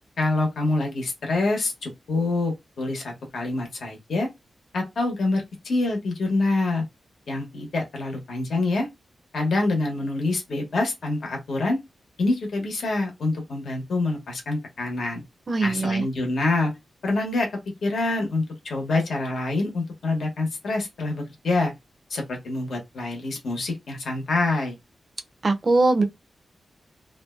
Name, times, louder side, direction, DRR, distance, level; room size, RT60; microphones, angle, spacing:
voice 1, 0.2-4.3 4.7-6.8 7.3-8.9 9.3-11.8 12.2-15.2 15.6-16.7 17.0-17.5 17.8-21.7 22.1-24.8, left 2 dB, 75° left, 0.9 m, -26 dB
voice 2, 15.5-16.0 25.4-26.0, right 3 dB, 35° right, 0.4 m, -21 dB
2.5 x 2.1 x 2.4 m
wide cardioid pair, 145°, 0 cm